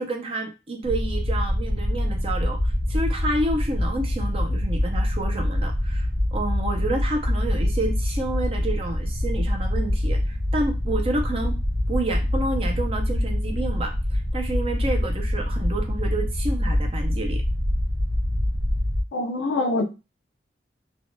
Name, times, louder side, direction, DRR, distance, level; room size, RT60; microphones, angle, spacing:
voice 1, 0.0-11.6 11.9-17.4, right 2 dB, 30° right, 3 dB, 0.4 m, -29 dB
sound 1, 0.8-19.0, left 1 dB, 65° right, 1.5 m, -25 dB
voice 2, 19.1-19.8, left 2 dB, 85° left, 4 dB, 0.5 m, -24 dB
3.3 x 2.2 x 2.5 m, 0.27 s
head